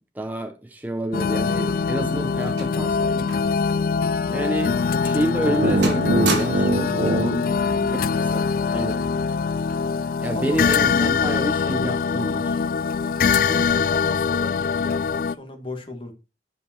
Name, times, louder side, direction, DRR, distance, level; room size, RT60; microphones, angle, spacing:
voice 1, 0.2-3.3 4.3-7.4 8.0-9.1 10.2-12.6, right 1 dB, 10° right, 0.8 m, -29 dB
sound 1, 1.1-15.4, left 5 dB, 50° left, 0.4 m, -23 dB
sound 2, 1.6-3.6 3.9-4.1 4.7-4.9 5.3-5.6 5.8-6.9 7.9-8.2, right 5 dB, 80° right, 3.2 m, -33 dB
voice 2, 4.5-4.9 7.1-7.5 10.3-10.7 13.5-16.1, left 1 dB, 30° left, 1.9 m, -36 dB
sound 3, 5.5-8.5, right 1 dB, 55° right, 1.4 m, -24 dB
10.5 x 5.2 x 4.5 m
head